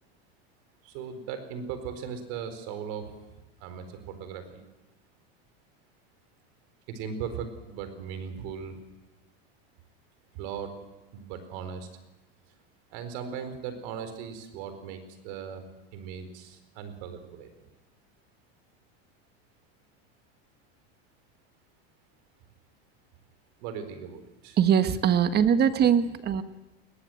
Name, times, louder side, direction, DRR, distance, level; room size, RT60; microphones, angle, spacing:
voice 1, 0.8-3.3 3.6-4.7 6.9-8.8 10.3-10.8 11.1-11.9 12.9-17.7 23.6-24.6, right 7 dB, 65° right, 9 dB, 4.3 m, -38 dB
voice 2, 24.6-26.4, right 8 dB, 30° right, 10 dB, 1.5 m, -22 dB
21.5 x 17.5 x 7.8 m, 1.0 s
supercardioid pair, 130°, 32 cm